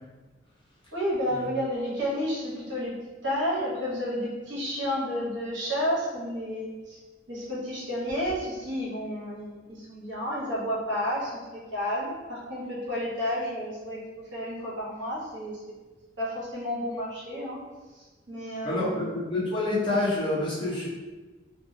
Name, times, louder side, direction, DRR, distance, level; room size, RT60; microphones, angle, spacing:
voice 1, 0.9-2.9 3.2-7.0 7.3-11.4 11.7-14.0 14.3-15.7 16.2-17.6 18.0-19.1, equal, 75° right, -6 dB, 0.8 m, -31 dB
voice 2, 18.6-20.9, left 2 dB, 25° left, -8 dB, 0.8 m, -27 dB
2.3 x 2.1 x 2.6 m, 1.3 s
head